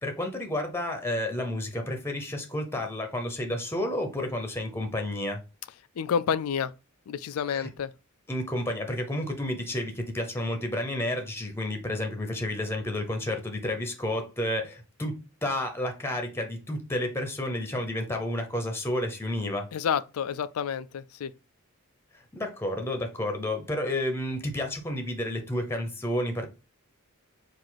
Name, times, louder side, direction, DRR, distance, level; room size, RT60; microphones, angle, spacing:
voice 1, 0.0-5.4 7.5-7.7 8.3-19.7 22.1-26.5, left 1 dB, 10° left, 0.8 m, -31 dB
voice 2, 6.0-6.7 7.1-7.9 19.7-21.3, left 7 dB, 75° left, 0.4 m, -29 dB
4.7 x 2.5 x 4.0 m
head